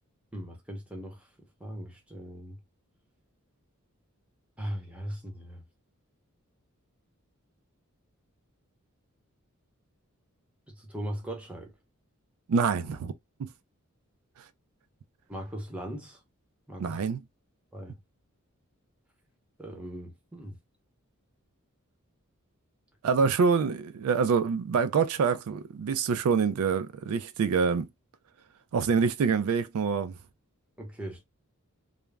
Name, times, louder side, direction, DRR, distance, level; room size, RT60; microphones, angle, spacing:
voice 1, 0.3-1.3 1.6-2.6 4.6-5.6 10.7-11.7 15.3-16.2 16.7-17.0 17.7-18.0 19.6-20.6 30.8-31.2, equal, 5° right, 0.7 m, -39 dB
voice 2, 12.5-13.1 13.4-13.5 16.8-17.2 23.0-27.9 28.7-30.2, right 5 dB, 75° right, 0.3 m, -26 dB
2.3 x 2.0 x 3.2 m
head